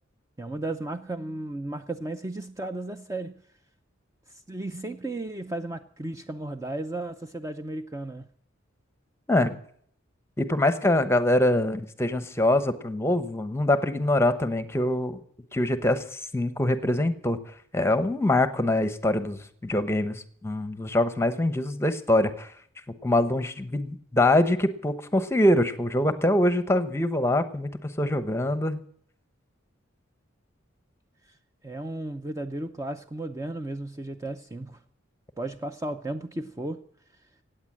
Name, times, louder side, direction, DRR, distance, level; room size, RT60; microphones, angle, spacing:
voice 1, 0.4-3.4 4.3-8.3 31.6-34.8 35.4-36.8, right 2 dB, 15° right, 0.6 m, -34 dB
voice 2, 10.4-15.2 15.5-16.0 16.3-17.4 17.7-22.5 23.0-28.8, left 1 dB, 15° left, 1.0 m, -24 dB
16.5 x 9.0 x 7.5 m
head